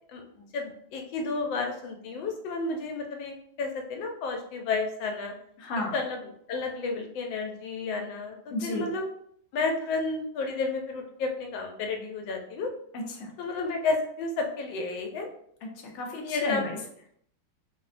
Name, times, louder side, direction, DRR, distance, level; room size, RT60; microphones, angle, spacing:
voice 1, 0.1-5.3 5.9-8.4 8.6-9.1 9.5-12.7 13.4-15.3 16.2-16.6, left 3 dB, 85° left, 3 dB, 1.3 m, -31 dB
voice 2, 5.6-6.0 8.5-8.9 12.9-13.3 15.7-16.8, left 2 dB, 70° left, 0 dB, 0.7 m, -33 dB
3.3 x 2.1 x 2.4 m, 0.67 s
omnidirectional pair, 2.0 m